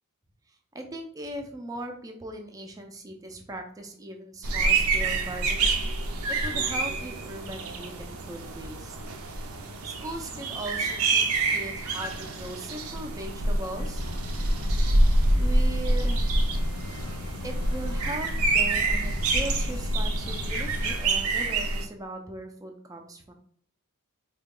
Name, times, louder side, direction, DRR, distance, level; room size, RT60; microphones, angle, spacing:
voice 1, 0.7-5.8 6.3-9.0 9.9-14.0 15.4-16.3 17.4-23.3, right 1 dB, 15° right, 4 dB, 0.4 m, -39 dB
sound 1, 4.4-21.8, right 2 dB, 70° right, 0.6 m, -26 dB
sound 2, 13.8-21.0, left 2 dB, 85° left, 0.4 m, -39 dB
3.8 x 2.2 x 3.6 m, 0.63 s
head